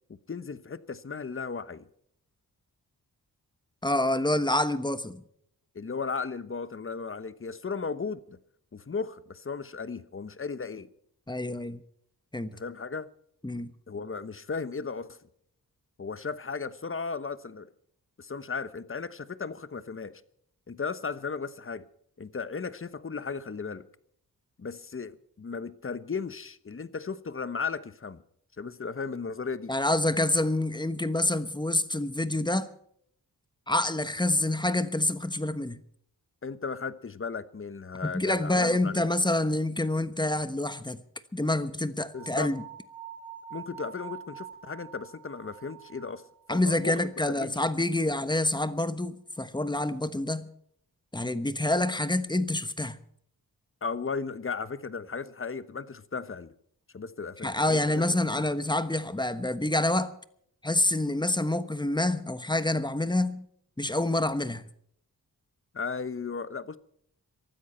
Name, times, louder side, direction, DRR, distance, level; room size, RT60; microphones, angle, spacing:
voice 1, 0.3-1.9 5.7-8.4 8.7-10.9 12.5-13.1 13.9-15.2 16.0-17.7 18.2-20.2 20.7-21.8 22.2-23.8 24.6-28.2 28.6-29.7 36.4-39.1 42.1-42.5 43.5-46.2 46.5-47.0 47.4-47.5 53.8-56.5 56.9-58.0 58.4-58.5 65.7-66.8, left 5 dB, 35° left, 1.1 m, -35 dB
voice 2, 3.8-5.2 11.3-11.8 12.3-12.5 13.4-13.7 29.7-32.7 33.7-35.8 38.0-41.0 41.3-42.6 46.5-50.5 51.1-53.0 57.4-60.2 60.6-63.5 63.8-64.6, left 1 dB, 10° left, 1.2 m, -27 dB
sound 1, 42.1-47.2, right 9 dB, 5° right, 6.6 m, -46 dB
23.5 x 13.0 x 4.4 m
wide cardioid pair, 85°, 37 cm